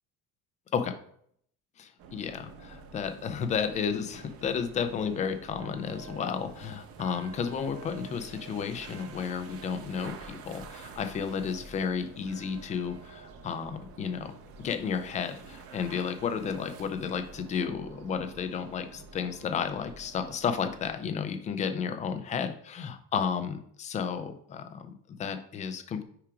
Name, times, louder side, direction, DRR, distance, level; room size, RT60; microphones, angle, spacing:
voice 1, 1.8-26.0, left 6 dB, 20° left, 8 dB, 0.3 m, -32 dB
sound 1, 2.0-21.0, right 4 dB, 35° right, 0.7 m, -49 dB
sound 2, 5.6-21.7, right 6 dB, 85° right, 1.5 m, -54 dB
5.7 x 4.9 x 4.8 m, 0.65 s
cardioid pair, 175°, 42 cm